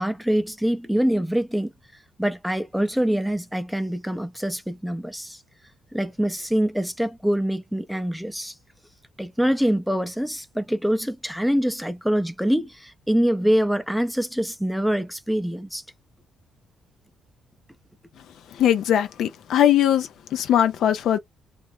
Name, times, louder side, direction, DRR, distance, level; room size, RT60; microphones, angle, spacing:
voice 1, 0.0-1.7 2.2-5.4 5.9-8.5 9.2-15.8, equal, ahead, 0.5 m, -24 dB
voice 2, 18.5-21.2, left 10 dB, 75° left, 0.4 m, -20 dB
2.4 x 2.0 x 2.9 m
cardioid pair, 100°, 0 cm